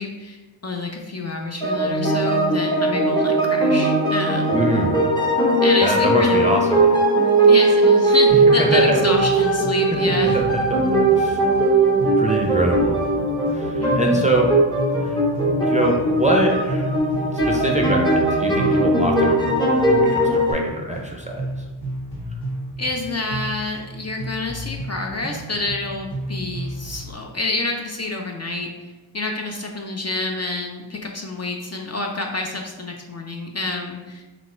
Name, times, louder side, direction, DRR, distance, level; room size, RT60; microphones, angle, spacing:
voice 1, 0.0-4.5 5.6-6.6 7.4-10.4 13.8-14.5 22.8-28.7 29.1-34.2, left 2 dB, 35° left, 1 dB, 0.6 m, -28 dB
sound 1, 1.6-20.5, right 2 dB, 10° left, 0.9 m, -19 dB
voice 2, 4.5-5.0 5.8-6.8 8.6-9.0 10.2-10.8 11.1-11.4 12.0-13.0 13.5-14.5 15.0-15.2 15.6-16.9 17.5-19.7 20.0-21.4, right 2 dB, 15° right, 0 dB, 0.5 m, -23 dB
sound 2, 8.3-27.1, right 1 dB, 55° left, 1.5 m, -33 dB
4.0 x 2.5 x 4.3 m, 1.2 s
wide cardioid pair, 80°, 47 cm